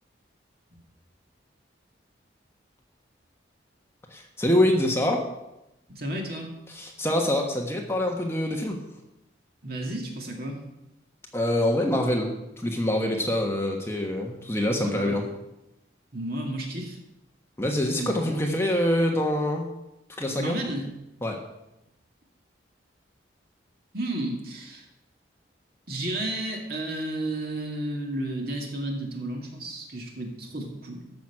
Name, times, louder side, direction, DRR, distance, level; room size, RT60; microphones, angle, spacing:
voice 1, 4.1-5.2 6.7-8.8 11.3-15.2 17.6-19.7 20.2-20.5 21.2-21.4, left 1 dB, 15° left, 1 dB, 1.2 m, -25 dB
voice 2, 6.0-6.5 9.6-10.6 14.8-15.2 16.1-17.0 18.0-18.2 20.4-20.9 23.9-24.9 25.9-31.1, right 1 dB, 55° right, 1 dB, 2.4 m, -32 dB
14.0 x 6.1 x 6.0 m, 0.90 s
head